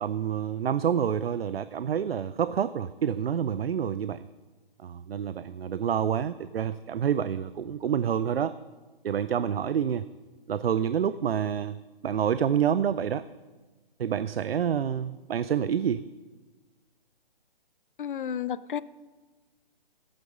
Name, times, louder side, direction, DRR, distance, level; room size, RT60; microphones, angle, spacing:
voice 1, 0.0-4.3 4.8-8.6 9.0-10.0 10.5-11.8 12.0-13.2 14.0-16.0, right 8 dB, 85° right, 15 dB, 0.5 m, -28 dB
voice 2, 18.0-18.8, left 8 dB, 60° left, 17 dB, 0.6 m, -31 dB
15.0 x 8.8 x 5.4 m, 1.2 s
hypercardioid pair, 150°, 29 cm